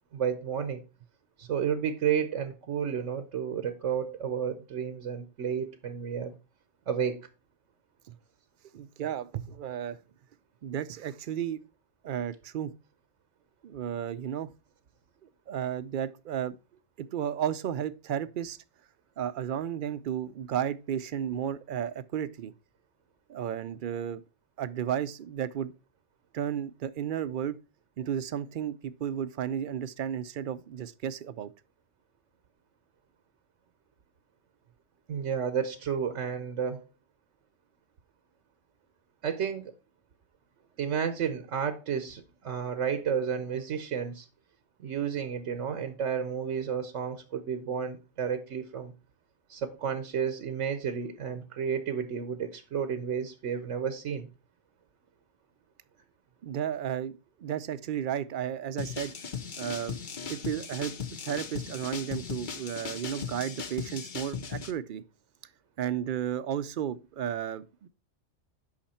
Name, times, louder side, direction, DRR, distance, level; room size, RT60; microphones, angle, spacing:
voice 1, 0.1-0.8 1.4-6.3 6.9-7.3 35.1-36.8 39.2-39.7 40.8-44.3 44.8-48.9 49.5-54.3, right 7 dB, 85° right, 1.2 m, -31 dB
voice 2, 8.7-10.0 10.6-11.6 12.0-12.7 13.6-14.5 15.2-16.6 17.0-18.6 19.2-22.5 23.3-24.2 24.6-25.7 26.3-27.6 28.0-31.5 56.4-59.1 59.6-60.0 60.3-60.9 61.2-65.0 65.8-67.9, right 9 dB, 55° right, 0.6 m, -33 dB
sound 1, 58.8-64.7, left 6 dB, 45° left, 0.9 m, -38 dB
8.7 x 5.8 x 4.2 m
omnidirectional pair, 1.2 m